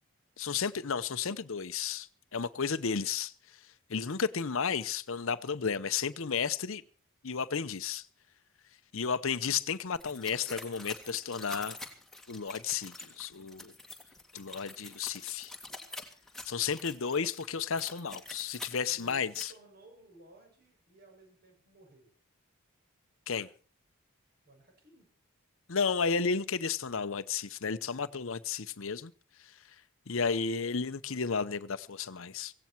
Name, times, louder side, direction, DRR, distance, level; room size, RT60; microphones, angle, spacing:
voice 1, 0.4-3.6 3.9-6.8 7.2-8.1 8.9-11.8 12.3-13.7 14.3-15.5 16.5-19.5 23.3-23.5 25.7-29.1 29.4-29.5 30.1-32.5, left 6 dB, 65° left, 0.7 m, -33 dB
sound 1, 9.9-19.4, left 2 dB, ahead, 2.1 m, -46 dB
voice 2, 16.5-17.1 18.9-22.1 24.4-25.1, right 2 dB, 40° right, 6.8 m, -58 dB
17.0 x 16.5 x 4.5 m
head